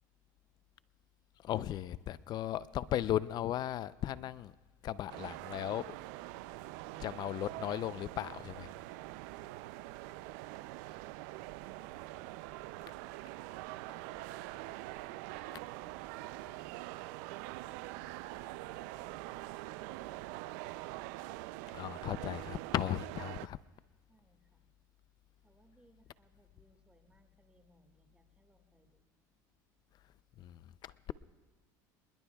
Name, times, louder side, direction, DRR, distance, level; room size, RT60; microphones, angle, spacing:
voice 1, 1.4-4.5 4.8-6.0 7.0-8.7 21.7-23.6 30.4-31.1, left 12 dB, 45° left, 17 dB, 0.5 m, -36 dB
sound 1, 5.1-23.5, right 18 dB, 75° right, 0.4 m, -44 dB
voice 2, 24.1-24.7 25.4-29.0, right 2 dB, 10° right, 5 dB, 1.9 m, -69 dB
27.5 x 21.0 x 2.3 m, 1.3 s
supercardioid pair, 105°, 10 cm